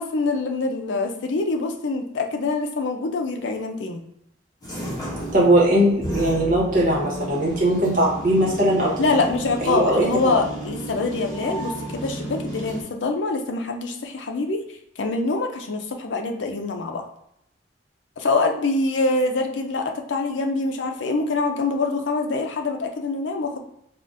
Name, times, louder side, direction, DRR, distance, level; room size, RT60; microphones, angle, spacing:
voice 1, 0.0-4.0 9.0-14.6 15.0-17.0 18.2-23.6, left 3 dB, 75° left, 4 dB, 0.5 m, -25 dB
sound 1, 4.6-12.8, right 1 dB, 20° left, 0.9 m, -33 dB
voice 2, 5.3-8.9 9.7-10.3, right 1 dB, 45° right, -4 dB, 1.1 m, -19 dB
3.6 x 2.4 x 2.5 m, 0.78 s
head